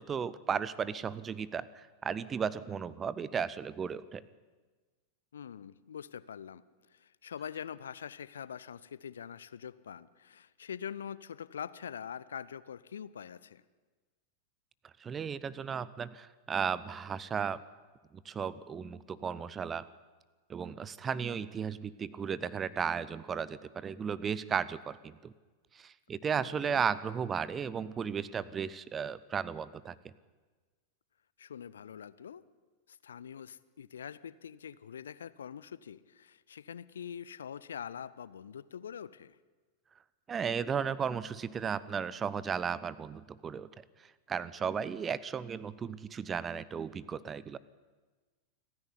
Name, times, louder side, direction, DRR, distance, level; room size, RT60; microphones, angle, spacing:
voice 1, 0.0-1.7 2.0-4.2 15.0-17.6 18.3-19.8 20.5-25.3 25.8-30.1 40.3-43.7 44.3-47.6, right 7 dB, 20° right, 19 dB, 0.7 m, -35 dB
voice 2, 5.3-6.6 6.9-13.6 26.4-26.8 31.4-32.4 32.9-39.4, left 8 dB, 65° left, 18 dB, 0.7 m, -44 dB
28.5 x 10.5 x 10.0 m, 1.3 s
figure-of-eight pair, 90°, 0 cm